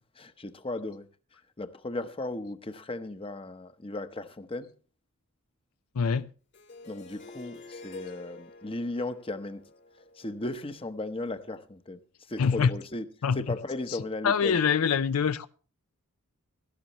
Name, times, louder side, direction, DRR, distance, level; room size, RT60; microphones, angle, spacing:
voice 1, 0.2-1.1 1.6-4.7 6.8-9.6 10.0-12.0 12.3-13.0 13.3-14.6, left 2 dB, 25° left, 0.8 m, -36 dB
voice 2, 5.9-6.3 12.4-12.7 13.2-13.4 13.9-14.0 14.2-15.5, left 6 dB, 75° left, 0.5 m, -24 dB
Harp, 6.5-11.5, left 3 dB, 55° left, 1.8 m, -48 dB
17.0 x 13.5 x 3.0 m
head